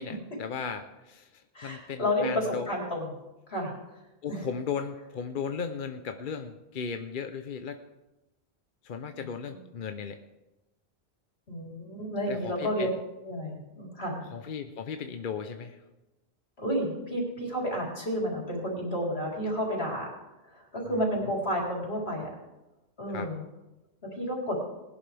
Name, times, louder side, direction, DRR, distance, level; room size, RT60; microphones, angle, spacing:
voice 1, 0.0-2.7 4.2-7.8 8.8-10.2 12.3-12.9 14.3-15.8 23.1-23.3, left 6 dB, 55° left, 7 dB, 0.8 m, -36 dB
voice 2, 1.5-3.1 3.5-3.7 4.3-4.5 9.5-9.6 11.5-12.9 13.2-14.2 16.6-20.1 20.4-22.3 23.0-23.4 24.1-24.6, equal, 75° left, -3 dB, 4.0 m, -31 dB
20.0 x 11.0 x 3.4 m, 1.0 s
omnidirectional pair, 1.1 m